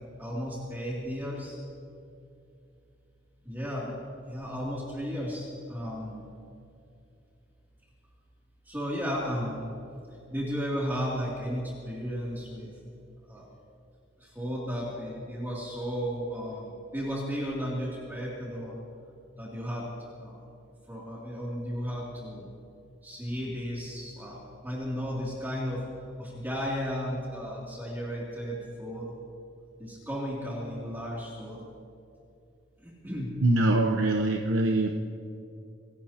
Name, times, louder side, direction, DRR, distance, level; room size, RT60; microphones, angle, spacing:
voice 1, 0.2-1.6 3.4-3.9 4.2-6.2 8.7-9.7 10.3-12.7 13.3-13.5 14.2-18.7 19.4-19.9 20.2-20.4 20.9-22.5 23.0-29.1 29.8-31.6 32.8-33.3, equal, 10° right, -5 dB, 2.7 m, -34 dB
voice 2, 33.4-35.0, right 2 dB, 80° right, 2 dB, 0.9 m, -24 dB
27.0 x 17.5 x 2.9 m, 2.6 s
head